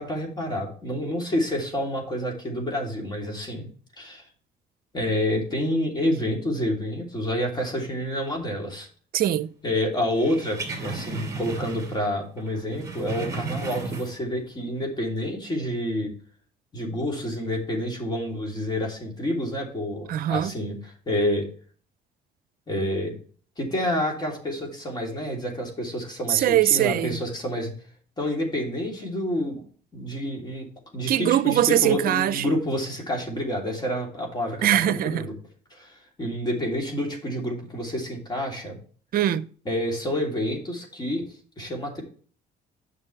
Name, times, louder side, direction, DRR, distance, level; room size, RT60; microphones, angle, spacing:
voice 1, 0.0-3.7 4.0-4.3 4.9-8.9 9.6-16.1 16.7-21.5 22.7-23.1 23.6-27.7 28.2-29.6 29.9-30.7 30.9-34.7 35.0-35.3 35.7-38.8 39.6-41.3 41.6-42.0, left 1 dB, 25° left, 3.2 m, -28 dB
voice 2, 9.1-9.5 20.1-20.5 26.3-27.2 31.1-32.4 34.6-35.3 39.1-39.5, right 12 dB, 60° right, 0.7 m, -22 dB
sound 1, 10.2-12.1 12.4-14.4 14.7-14.9, right 4 dB, 20° right, 2.7 m, -35 dB
9.5 x 6.4 x 3.3 m
cardioid pair, 110°, 17 cm